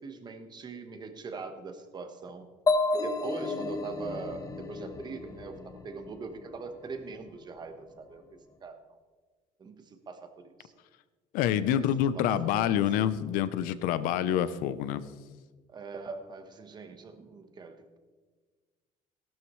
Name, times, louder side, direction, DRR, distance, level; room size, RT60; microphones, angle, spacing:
voice 1, 0.0-2.5 3.0-9.0 9.6-10.7 11.6-12.8 15.7-18.0, right 4 dB, 30° right, 7 dB, 1.2 m, -42 dB
sound 1, 2.7-6.3, left 3 dB, 25° left, 1.0 m, -31 dB
voice 2, 11.3-15.0, left 10 dB, 90° left, 14 dB, 0.7 m, -27 dB
16.5 x 12.0 x 3.2 m, 1.4 s
cardioid pair, 135°, 14 cm